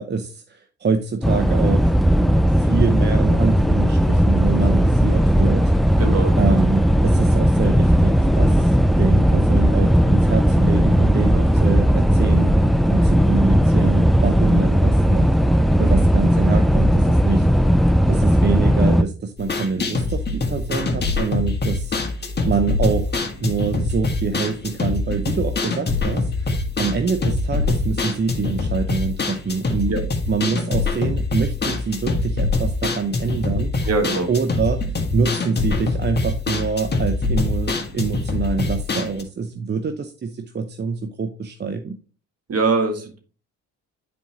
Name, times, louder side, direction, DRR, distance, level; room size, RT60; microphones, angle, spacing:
voice 1, 0.0-5.7 6.4-15.3 15.8-17.5 18.1-22.0 22.5-23.1 23.4-29.9 30.3-33.7 34.3-34.8 35.1-42.0, right 5 dB, 35° right, 7 dB, 0.7 m, -25 dB
sound 1, 1.2-19.0, equal, ahead, 0.4 m, -16 dB
voice 2, 6.0-6.3 29.9-30.0 33.8-34.3 42.5-43.2, right 3 dB, 50° right, 5 dB, 1.8 m, -22 dB
sound 2, 19.4-39.2, left 3 dB, 30° left, 1.6 m, -24 dB
9.1 x 4.5 x 2.9 m, 0.37 s
supercardioid pair, 70°, 31 cm